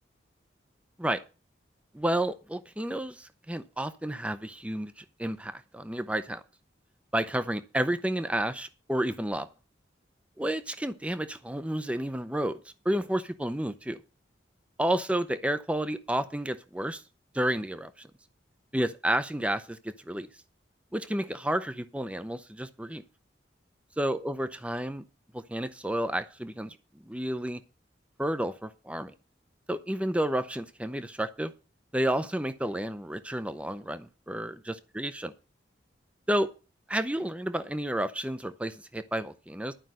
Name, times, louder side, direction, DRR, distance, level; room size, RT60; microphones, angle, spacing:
voice 1, 1.9-6.4 7.1-9.5 10.4-12.6 12.8-14.0 14.8-17.0 17.3-18.1 18.7-20.3 20.9-23.0 24.0-25.0 25.3-26.8 27.0-27.6 28.2-29.1 29.7-31.5 31.9-35.3 36.3-36.5 36.9-39.7, right 1 dB, 5° right, 12 dB, 0.6 m, -31 dB
11.5 x 5.4 x 7.6 m, 0.32 s
head